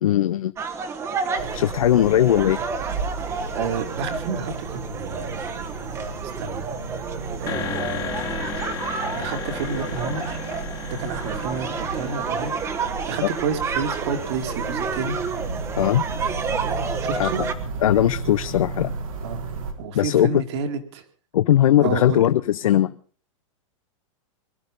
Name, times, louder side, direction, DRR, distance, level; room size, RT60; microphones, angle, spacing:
voice 1, 0.0-0.5 1.5-2.6 15.8-16.1 17.2-17.3 17.8-18.9 19.9-20.4 21.3-22.9, left 12 dB, 90° left, 13 dB, 0.7 m, -19 dB
sound 1, 0.6-17.5, right 5 dB, 15° right, 1.2 m, -30 dB
sound 2, 1.4-19.7, right 4 dB, 85° right, 4.0 m, -34 dB
voice 2, 3.2-5.4 6.4-6.7 7.4-8.6 8.9-10.4 10.9-15.2 17.0-17.4 18.6-18.7 19.2-19.5 19.8-21.0 21.8-22.2, right 5 dB, 55° right, 6 dB, 2.6 m, -31 dB
sound 3, 7.5-15.2, left 9 dB, 20° left, 1.6 m, -36 dB
21.5 x 12.0 x 5.3 m, 0.43 s
supercardioid pair, 160°, 17 cm